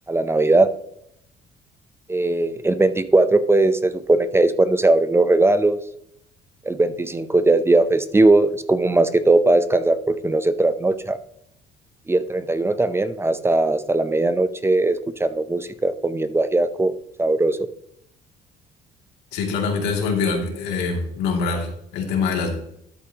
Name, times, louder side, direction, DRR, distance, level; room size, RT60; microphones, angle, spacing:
voice 1, 0.1-0.7 2.1-5.8 6.6-11.2 12.1-16.9 17.2-17.7, right 2 dB, 15° right, 12 dB, 0.6 m, -19 dB
voice 2, 19.3-22.6, left 4 dB, 90° left, 1 dB, 2.6 m, -24 dB
12.5 x 8.5 x 3.0 m, 0.73 s
cardioid pair, 110°, 17 cm